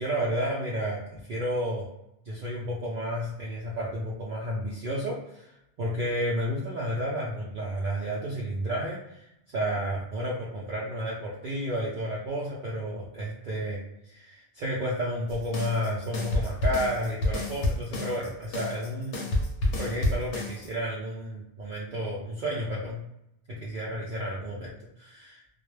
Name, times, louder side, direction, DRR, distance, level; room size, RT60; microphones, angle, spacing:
voice 1, 0.0-1.9 2.3-23.0 23.5-24.7 25.0-25.4, equal, 60° right, -5 dB, 0.6 m, -32 dB
sound 1, 15.3-20.7, left 1 dB, 75° left, 0.9 m, -29 dB
2.3 x 2.0 x 3.1 m, 0.85 s
omnidirectional pair, 1.1 m